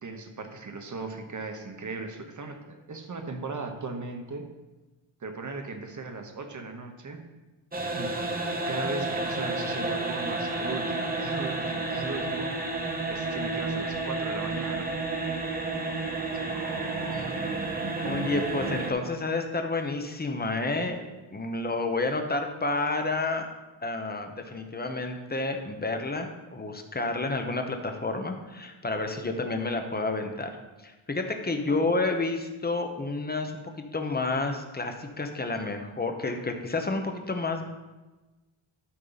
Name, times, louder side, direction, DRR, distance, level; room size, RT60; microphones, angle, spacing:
voice 1, 0.0-4.5 5.2-7.2 7.9-8.1 8.7-12.7 13.1-14.9 16.2-17.4 31.6-31.9, right 3 dB, 35° right, 5 dB, 1.1 m, -38 dB
sound 1, 7.7-18.9, right 3 dB, 20° right, 0.9 m, -31 dB
voice 2, 18.0-23.5 23.8-30.5 30.8-37.7, left 3 dB, 20° left, 5 dB, 0.9 m, -30 dB
12.5 x 5.3 x 4.1 m, 1.1 s
wide cardioid pair, 140°, 49 cm